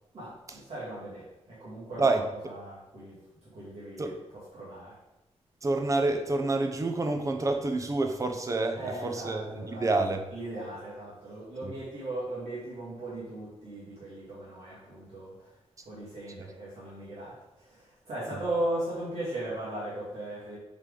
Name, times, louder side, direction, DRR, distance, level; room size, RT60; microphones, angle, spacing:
voice 1, 0.1-4.1 4.5-5.0 8.7-15.6 15.8-20.6, right 1 dB, 65° right, -9 dB, 2.5 m, -38 dB
voice 2, 5.6-10.2 11.6-11.7 16.4-16.5, right 2 dB, 30° right, 5 dB, 0.7 m, -28 dB
7.1 x 5.1 x 3.9 m, 0.96 s
wide cardioid pair, 145°, 11 cm